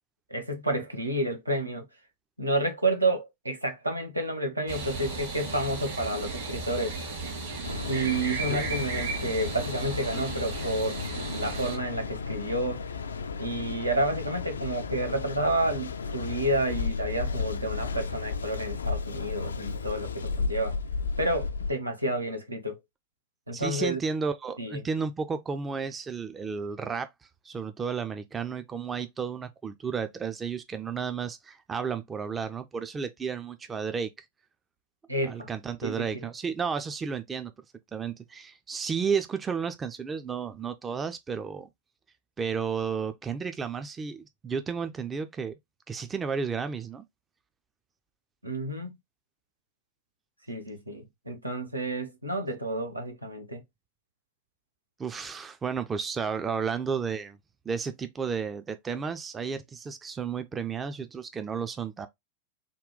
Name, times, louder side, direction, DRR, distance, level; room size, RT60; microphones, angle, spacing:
voice 1, 0.3-1.9 2.4-7.0 7.8-11.0 11.3-12.8 13.4-20.8 21.2-22.8 23.5-24.0 24.6-24.8 35.1-35.5 35.8-36.3 48.4-49.0 50.5-53.6, right 1 dB, 85° right, 0.8 m, -30 dB
sound 1, 4.7-11.8, right 3 dB, 55° right, 1.8 m, -35 dB
Mechanical fan, 7.6-21.7, left 5 dB, 70° left, 0.3 m, -34 dB
voice 2, 23.5-27.1 27.4-34.1 35.3-37.5 37.9-41.7 42.4-45.5 45.9-47.0 55.0-57.4 57.7-62.1, right 6 dB, 20° right, 0.4 m, -32 dB
3.7 x 2.3 x 3.7 m
figure-of-eight pair, 90°, 0 cm